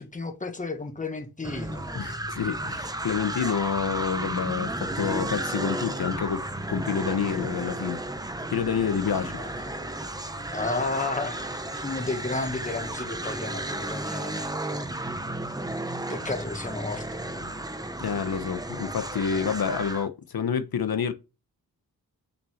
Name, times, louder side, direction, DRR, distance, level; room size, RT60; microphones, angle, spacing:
voice 1, 0.0-2.0 9.1-9.5 10.5-14.8 16.1-17.5, left 3 dB, 20° left, 1.4 m, -33 dB
sound 1, 1.4-20.1, right 1 dB, 10° right, 0.8 m, -33 dB
voice 2, 1.9-6.4 6.7-8.0 8.5-9.4 18.0-21.1, left 7 dB, 75° left, 1.1 m, -28 dB
sound 2, 3.6-14.6, right 3 dB, 60° right, 3.5 m, -53 dB
7.2 x 6.0 x 7.1 m
wide cardioid pair, 130°, 37 cm